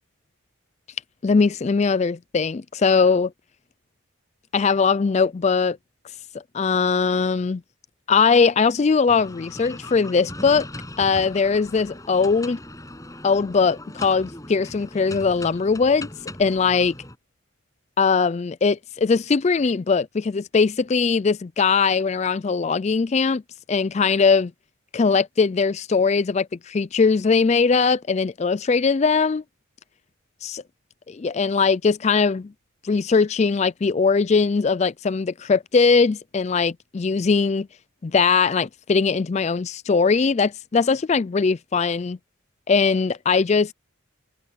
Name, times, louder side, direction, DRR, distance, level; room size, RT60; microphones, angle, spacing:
voice 1, 1.2-3.3 4.5-5.8 6.5-7.6 8.1-10.7 11.0-12.6 13.2-16.1 16.4-16.9 18.0-23.4 23.7-24.5 24.9-29.4 30.4-30.6 31.1-32.5 32.8-37.7 38.0-42.2 42.7-43.7, left 5 dB, 30° left, 0.3 m, -20 dB
sound 1, 9.1-17.2, left 1 dB, 15° left, 8.0 m, -39 dB
head